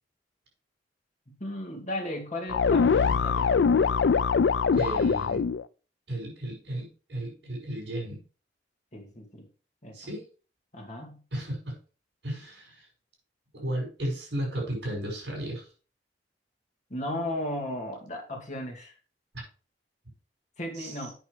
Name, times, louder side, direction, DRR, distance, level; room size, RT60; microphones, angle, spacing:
voice 1, 1.4-3.9 8.9-9.5 9.8-10.0 10.7-11.2 16.9-18.9 20.6-21.1, left 1 dB, 40° left, 1 dB, 2.4 m, -35 dB
sound 1, 2.5-5.6, left 5 dB, 80° left, 0.4 m, -23 dB
voice 2, 4.7-5.4 6.1-8.2 9.9-10.2 11.3-11.8 12.2-12.9 13.5-15.7 20.8-21.1, right 1 dB, 70° right, -3 dB, 5.8 m, -34 dB
8.5 x 6.2 x 4.9 m, 0.37 s
head